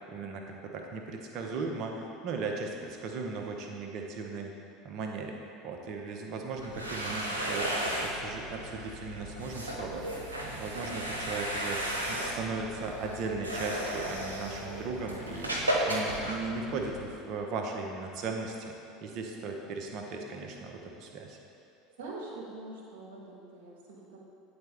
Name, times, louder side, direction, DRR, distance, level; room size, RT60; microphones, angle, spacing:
voice 1, 0.1-4.5 4.8-5.4 5.6-7.7 8.0-10.1 10.4-11.8 12.1-18.7 19.0-21.4, right 4 dB, 45° right, 2 dB, 0.8 m, -37 dB
sound 1, 6.5-17.1, equal, 85° right, 0.8 m, -34 dB
voice 2, 22.0-24.2, right 2 dB, 65° right, -3 dB, 1.1 m, -44 dB
9.1 x 4.3 x 3.4 m, 2.8 s
figure-of-eight pair, 70°, 0 cm